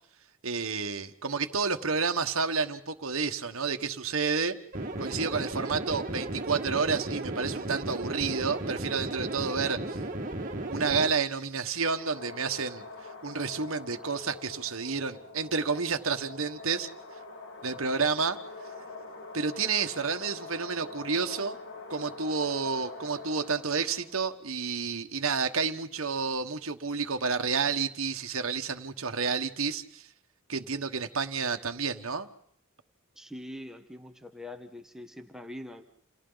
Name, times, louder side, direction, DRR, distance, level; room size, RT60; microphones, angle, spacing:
voice 1, 0.4-4.6 5.0-10.0 10.7-12.8 13.2-16.9 17.6-18.4 19.3-21.6 21.9-30.1 30.5-32.3, right 5 dB, 75° right, 6 dB, 1.4 m, -30 dB
sound 1, 4.7-11.1, right 2 dB, 40° right, 1.9 m, -35 dB
sound 2, 11.7-24.2, left 3 dB, 55° left, 2.0 m, -44 dB
voice 2, 33.1-35.8, left 1 dB, ahead, 4 dB, 1.3 m, -43 dB
29.5 x 29.0 x 4.0 m, 0.67 s
head